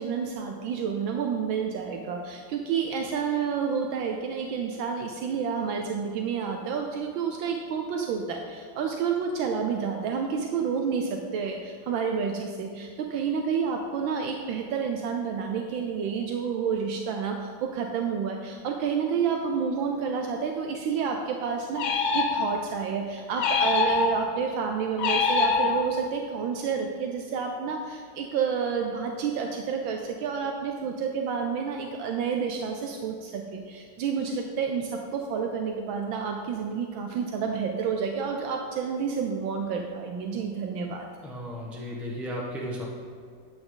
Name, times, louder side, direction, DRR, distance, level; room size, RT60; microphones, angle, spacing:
voice 1, 0.0-41.1, right 6 dB, 80° right, 3 dB, 1.5 m, -29 dB
sound 1, 21.8-22.8 23.4-24.4 25.0-26.2, left 4 dB, 70° left, 1.3 m, -25 dB
voice 2, 41.2-42.9, equal, ahead, -3 dB, 1.2 m, -34 dB
11.0 x 8.1 x 3.9 m, 2.2 s
omnidirectional pair, 2.1 m